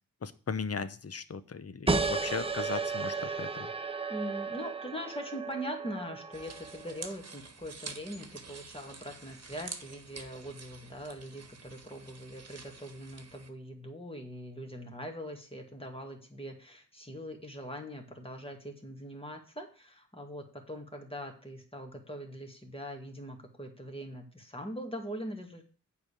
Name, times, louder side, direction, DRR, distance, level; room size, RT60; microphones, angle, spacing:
voice 1, 0.2-3.7, left 5 dB, 50° left, 13 dB, 0.8 m, -37 dB
sound 1, 1.9-7.1, right 4 dB, 20° right, 0.7 m, -34 dB
voice 2, 4.1-25.7, equal, 20° left, 3 dB, 2.2 m, -42 dB
sound 2, 6.3-13.5, right 4 dB, 55° right, 1.3 m, -48 dB
8.2 x 5.1 x 7.0 m, 0.39 s
cardioid pair, 55°, 31 cm